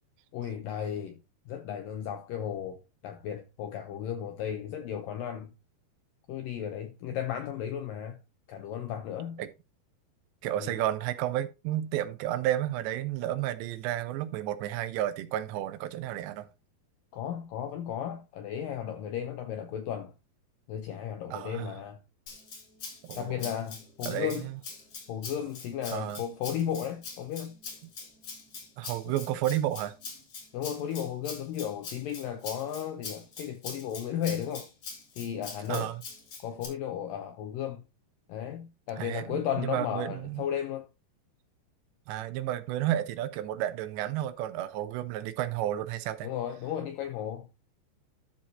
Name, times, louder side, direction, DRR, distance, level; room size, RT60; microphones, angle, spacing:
voice 1, 0.3-1.2 1.5-5.5 6.3-8.2 8.5-9.4 10.6-10.8 17.1-20.1 20.7-22.0 23.2-24.4 25.1-27.6 29.1-29.2 30.5-34.7 35.2-35.9 36.4-37.8 38.3-40.9 46.2-47.5, left 9 dB, 80° left, 2.0 m, -34 dB
voice 2, 10.4-16.5 21.3-21.7 23.0-23.5 24.1-24.6 25.9-26.2 28.8-29.9 35.7-36.0 39.0-40.4 42.1-46.3, right 13 dB, 85° right, 3.0 m, -32 dB
Rattle (instrument), 22.3-36.7, left 4 dB, 40° left, 3.6 m, -43 dB
12.5 x 4.5 x 4.0 m
omnidirectional pair, 5.0 m